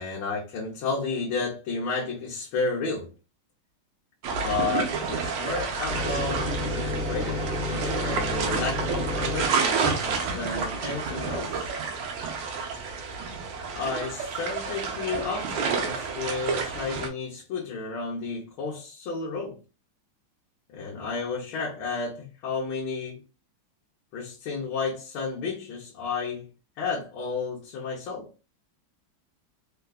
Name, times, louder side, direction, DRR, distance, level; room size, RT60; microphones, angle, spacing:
voice 1, 0.0-3.1 4.4-7.4 7.7-11.7 13.7-19.6 20.7-23.2 24.1-26.5 26.8-28.3, left 4 dB, 75° left, 1.6 m, -32 dB
sound 1, 4.2-17.1, right 5 dB, 85° right, 1.5 m, -30 dB
sound 2, 5.9-13.5 14.9-15.2, left 1 dB, 50° right, 1.2 m, -33 dB
4.1 x 2.2 x 2.2 m
omnidirectional pair, 2.3 m